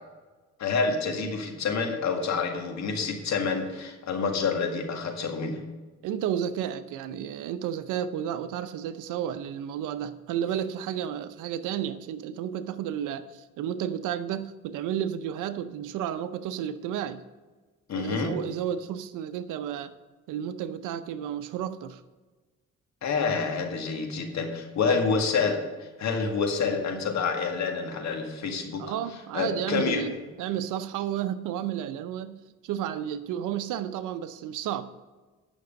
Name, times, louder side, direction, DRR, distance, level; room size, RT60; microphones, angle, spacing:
voice 1, 0.6-5.6 17.9-18.3 23.0-28.9 29.3-30.0, left 5 dB, 65° left, 1.8 m, -28 dB
voice 2, 6.0-17.2 17.9-20.0 20.3-22.0 24.8-25.0 28.8-32.4 32.6-34.8, right 10 dB, 90° right, 0.7 m, -32 dB
9.3 x 6.2 x 5.2 m
cardioid pair, 90°, 30 cm